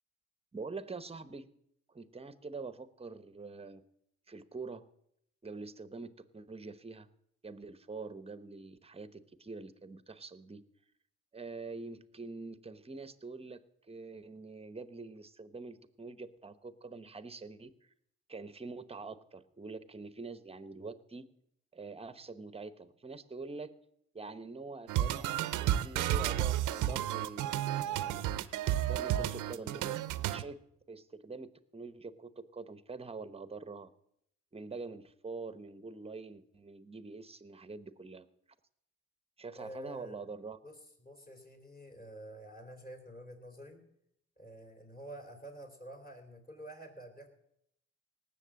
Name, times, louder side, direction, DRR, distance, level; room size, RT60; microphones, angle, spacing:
voice 1, 0.5-1.5 1.9-3.8 4.3-4.8 5.4-7.1 7.4-10.6 11.3-17.9 18.3-21.3 21.7-23.8 24.1-28.3 28.8-30.6 30.9-33.9 34.5-38.3 39.4-40.6, right 4 dB, 20° right, 13 dB, 0.9 m, -45 dB
sound 1, 24.9-30.4, right 12 dB, 85° right, 0.7 m, -32 dB
voice 2, 39.6-40.2 40.6-43.8 44.4-47.3, right 1 dB, 30° left, 4 dB, 3.7 m, -49 dB
18.5 x 7.3 x 7.5 m, 0.75 s
cardioid pair, 90°, 30 cm